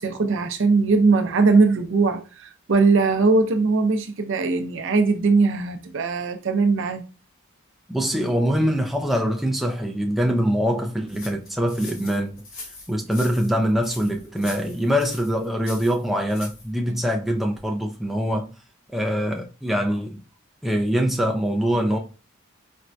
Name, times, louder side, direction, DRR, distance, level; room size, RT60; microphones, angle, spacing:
voice 1, 0.0-7.0 16.9-17.0, right 4 dB, 65° right, 0.5 m, -20 dB
voice 2, 7.9-12.3 12.9-18.5 18.9-20.2 20.6-22.0, equal, ahead, 0.4 m, -23 dB
sound 1, 11.1-16.7, left 3 dB, 85° left, 1.8 m, -41 dB
4.3 x 2.2 x 2.5 m
head